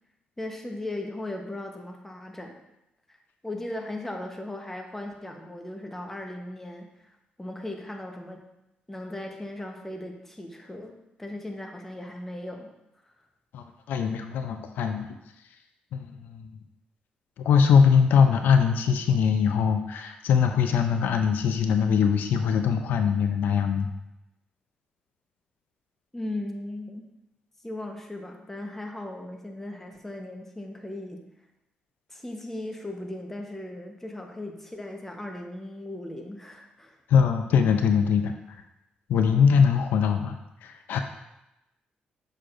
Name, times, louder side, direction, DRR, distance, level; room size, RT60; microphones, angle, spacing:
voice 1, 0.4-2.5 3.1-3.2 3.4-7.1 7.4-8.5 8.9-12.7 13.0-13.1 26.1-27.1 27.6-31.2 32.1-37.0, left 1 dB, 10° left, 2 dB, 0.9 m, -37 dB
voice 2, 13.5-15.1 15.9-16.5 17.4-23.9 37.1-38.3 39.1-41.0, left 6 dB, 80° left, 7 dB, 0.5 m, -22 dB
6.6 x 6.1 x 2.5 m, 0.91 s
cardioid pair, 95°, 3 cm